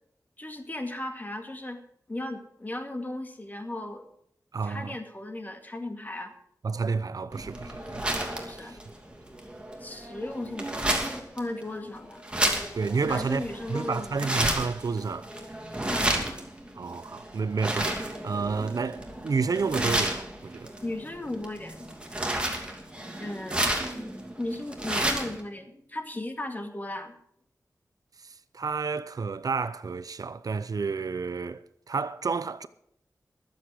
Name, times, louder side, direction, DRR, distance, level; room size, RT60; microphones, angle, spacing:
voice 1, 0.4-1.8 2.1-4.1 4.6-6.3 8.5-8.8 9.8-12.3 13.0-14.3 15.8-16.2 20.8-21.9 23.2-27.2, left 1 dB, 25° left, 2.1 m, -36 dB
voice 2, 4.5-5.0 6.6-8.1 8.4-8.8 12.7-15.3 16.8-20.7 22.2-22.4 28.2-32.7, right 4 dB, 65° right, 0.7 m, -30 dB
sound 1, 7.3-25.4, right 1 dB, 15° right, 2.7 m, -32 dB
22.0 x 7.9 x 4.9 m
wide cardioid pair, 100°, 7 cm